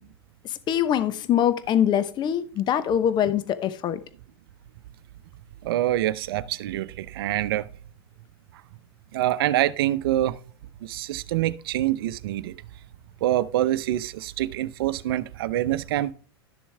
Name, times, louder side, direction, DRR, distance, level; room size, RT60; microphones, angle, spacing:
voice 1, 0.7-4.0, left 9 dB, 35° left, 0.9 m, -23 dB
voice 2, 5.6-7.7 9.1-10.4 10.8-12.5 13.2-16.1, right 14 dB, 65° right, 0.7 m, -25 dB
12.0 x 7.1 x 3.4 m
hypercardioid pair, 95°, 13 cm